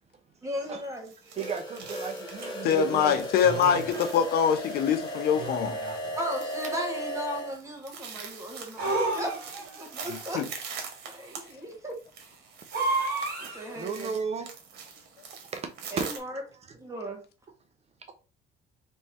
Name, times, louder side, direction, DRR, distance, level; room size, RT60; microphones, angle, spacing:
voice 1, 0.4-1.4 6.1-10.4 11.0-12.0 13.5-14.1 15.9-16.4 16.8-17.2, equal, 20° right, 1.7 m, -36 dB
sound 1, 0.6-16.2, right 6 dB, 80° right, 1.3 m, -44 dB
sound 2, 1.3-7.6, equal, 25° left, 1.5 m, -36 dB
voice 2, 1.4-3.2 13.8-14.5 15.5-16.1, right 6 dB, 40° right, 0.7 m, -34 dB
sound 3, 2.4-2.5 3.4-4.2 5.4-6.1 8.8-9.8 12.7-13.8, right 2 dB, 65° right, 2.2 m, -31 dB
voice 3, 2.6-5.7 10.3-10.4, left 7 dB, 70° left, 0.8 m, -24 dB
3.5 x 3.1 x 4.2 m
cardioid pair, 110°, 17 cm